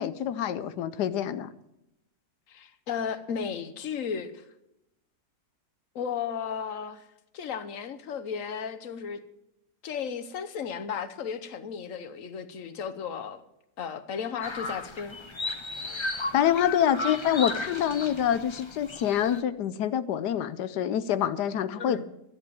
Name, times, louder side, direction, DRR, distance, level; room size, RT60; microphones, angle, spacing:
voice 1, 0.0-1.5 16.3-22.0, left 10 dB, 90° left, 1.3 m, -26 dB
voice 2, 2.5-4.4 5.9-7.0 7.3-9.2 9.8-13.4 13.8-15.2 21.8-22.0, left 7 dB, 55° left, 1.3 m, -34 dB
sound 1, 14.4-19.4, left 2 dB, 25° left, 0.6 m, -35 dB
11.5 x 10.5 x 7.0 m
omnidirectional pair, 1.7 m